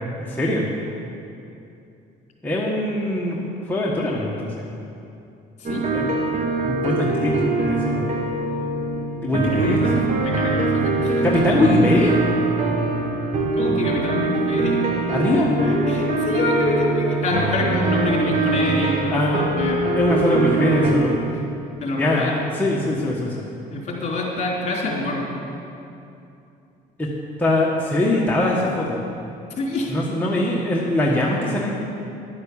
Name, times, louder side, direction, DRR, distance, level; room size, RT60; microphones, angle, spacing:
voice 1, 0.3-0.7 2.4-3.4 3.7-4.7 5.9-6.0 6.6-8.1 9.2-10.1 11.2-12.1 15.1-15.5 19.1-19.5 20.0-21.2 21.9-23.4 27.0-27.1 27.4-29.0 29.9-31.8, left 1 dB, 10° left, -5 dB, 1.4 m, -22 dB
voice 2, 5.6-6.0 9.5-11.4 13.5-14.9 15.6-20.0 21.2-21.4 21.8-22.5 23.7-25.3 29.6-29.9, left 2 dB, 45° left, -2 dB, 3.5 m, -26 dB
sound 1, 5.6-20.9, right 3 dB, 45° right, 1.7 m, -23 dB
11.0 x 9.8 x 7.0 m, 2.7 s
cardioid pair, 110°, 17 cm